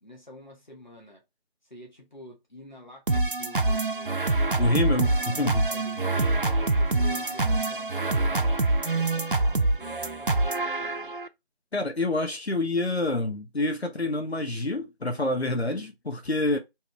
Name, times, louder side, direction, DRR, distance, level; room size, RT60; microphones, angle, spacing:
voice 1, 0.0-1.2 1.6-4.4 4.9-11.2, left 1 dB, 45° left, 1.5 m, -48 dB
sound 1, 3.1-11.3, right 2 dB, 55° right, 0.5 m, -25 dB
voice 2, 4.6-5.1 5.4-5.7 11.7-16.6, left 2 dB, 90° left, 1.0 m, -27 dB
3.8 x 2.9 x 4.3 m
figure-of-eight pair, 175°, 31 cm